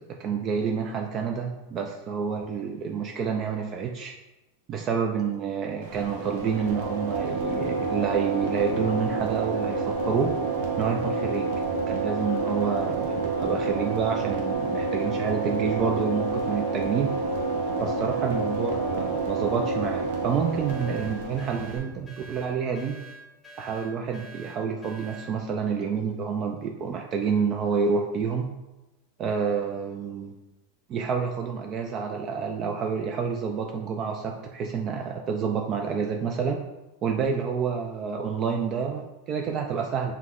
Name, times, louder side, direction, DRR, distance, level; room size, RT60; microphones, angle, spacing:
voice 1, 0.1-4.1 4.7-10.3 10.8-11.5 11.9-17.1 17.8-23.0 23.6-28.5 29.2-30.3 30.9-36.6 37.0-40.1, right 6 dB, 40° right, 2 dB, 0.4 m, -28 dB
sound 1, 5.8-21.8, right 3 dB, 70° right, 0.8 m, -28 dB
sound 2, 20.7-25.3, right 2 dB, 10° left, 0.8 m, -46 dB
5.5 x 2.1 x 3.7 m, 1.0 s
hypercardioid pair, 110°, 0 cm